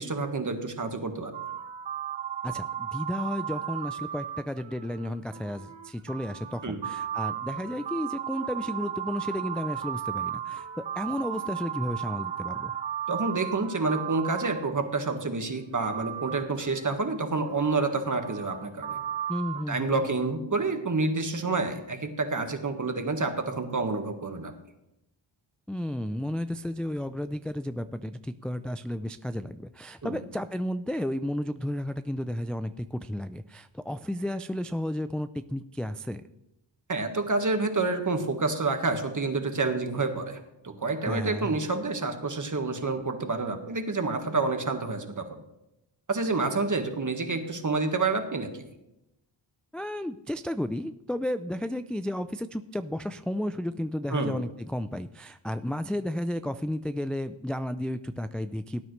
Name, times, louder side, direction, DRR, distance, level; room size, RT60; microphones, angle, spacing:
voice 1, 0.0-1.3 6.6-6.8 13.1-19.0 19.7-24.5 30.0-30.2 36.9-40.4 40.6-45.3 46.1-48.7 54.1-54.4, right 3 dB, 40° right, 6 dB, 1.6 m, -28 dB
sound 1, 1.3-15.1 15.8-19.6, right 9 dB, 65° right, 0.9 m, -35 dB
voice 2, 2.4-12.7 19.3-20.0 25.7-36.2 41.1-41.6 49.7-58.8, left 1 dB, ahead, 10 dB, 0.3 m, -33 dB
17.5 x 9.2 x 3.2 m, 0.88 s
cardioid pair, 65°, 47 cm